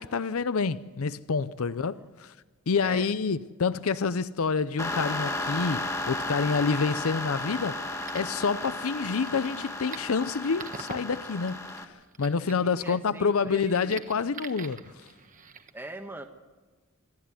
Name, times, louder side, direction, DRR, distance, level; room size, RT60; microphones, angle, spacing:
voice 1, 0.0-2.3 2.7-15.1, left 5 dB, 80° left, 0.6 m, -28 dB
voice 2, 1.6-2.1 2.8-3.1 12.6-14.0 15.7-16.3, right 1 dB, 10° right, 1.2 m, -42 dB
sound 1, 4.8-11.8, left 2 dB, 15° left, 1.8 m, -34 dB
sound 2, 7.4-15.7, right 5 dB, 40° right, 1.4 m, -46 dB
26.5 x 13.5 x 9.6 m
head